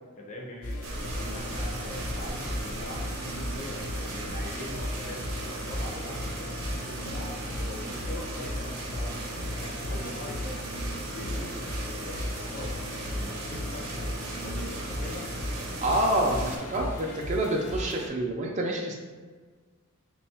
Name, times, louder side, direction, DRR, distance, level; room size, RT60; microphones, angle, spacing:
voice 1, 0.2-7.4 7.7-9.3 9.6-10.6 11.1-12.8 13.1-15.3, left 1 dB, 35° left, -1 dB, 0.5 m, -42 dB
sound 1, 0.6-18.1, left 1 dB, 80° left, 0.6 m, -37 dB
sound 2, 0.8-16.6, right 1 dB, 85° right, 0.7 m, -36 dB
voice 2, 15.8-18.9, right 1 dB, 35° right, 0 dB, 0.4 m, -27 dB
3.1 x 2.3 x 4.3 m, 1.5 s
head